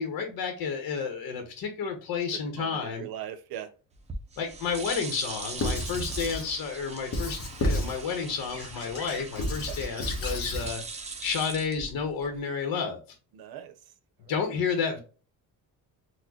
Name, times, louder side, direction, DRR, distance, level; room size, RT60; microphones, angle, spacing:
voice 1, 0.0-3.1 4.4-10.8 11.2-13.0 14.3-15.0, left 6 dB, 70° left, 5 dB, 0.9 m, -31 dB
voice 2, 2.3-3.7 9.7-9.8 13.3-13.7, right 11 dB, 80° right, 11 dB, 0.7 m, -39 dB
sound 1, 3.9-12.4, right 4 dB, 20° right, 0.5 m, -41 dB
Squeak / Writing, 5.6-6.5 7.1-8.0 8.5-10.7, left 1 dB, 40° left, 1.0 m, -31 dB
4.1 x 2.1 x 2.8 m, 0.35 s
cardioid pair, 155°, 36 cm